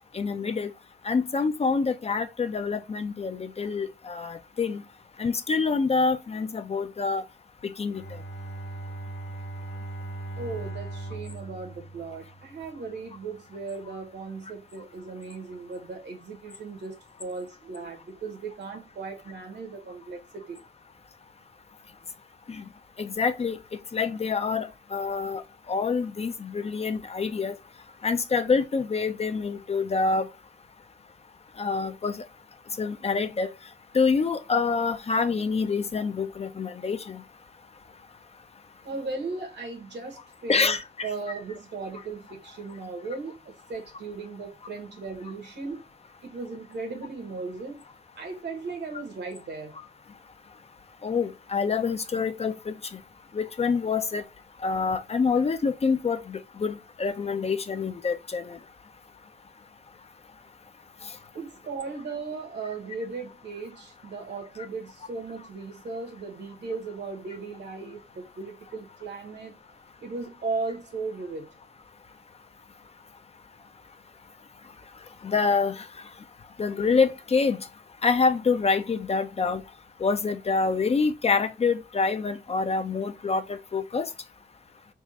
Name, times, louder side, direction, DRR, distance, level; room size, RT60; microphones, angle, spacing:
voice 1, 0.1-0.7 1.0-4.8 5.2-7.2 7.8-8.0 22.5-22.6 23.0-23.6 23.9-25.4 25.7-27.5 28.0-30.3 31.6-32.2 32.8-33.5 33.9-37.2 40.5-41.1 51.0-52.7 53.3-54.2 54.6-58.6 75.2-75.8 76.6-77.6 78.0-79.6 80.0-84.1, left 4 dB, 35° left, 0.4 m, -26 dB
Bowed string instrument, 7.9-12.9, right 2 dB, 85° left, 1.1 m, -39 dB
voice 2, 10.4-20.6 38.8-40.8 41.0-45.8 46.2-47.8 48.1-49.8 61.3-69.5 70.0-71.5, right 4 dB, 75° right, 1.3 m, -37 dB
3.6 x 2.4 x 3.9 m
wide cardioid pair, 130°, 18 cm